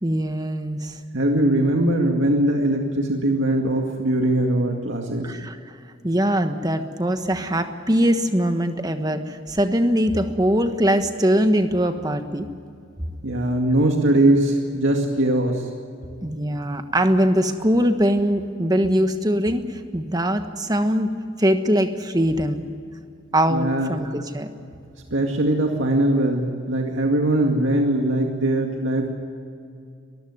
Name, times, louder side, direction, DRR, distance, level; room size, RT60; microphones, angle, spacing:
voice 1, 0.0-1.0 5.2-5.6 6.0-12.5 16.2-21.1 21.4-22.6 23.3-24.5, equal, 20° right, 7 dB, 1.3 m, -22 dB
voice 2, 1.1-5.3 13.2-15.7 23.5-24.0 25.1-29.1, right 1 dB, 75° right, 1 dB, 2.2 m, -21 dB
23.5 x 15.0 x 9.6 m, 2.4 s
head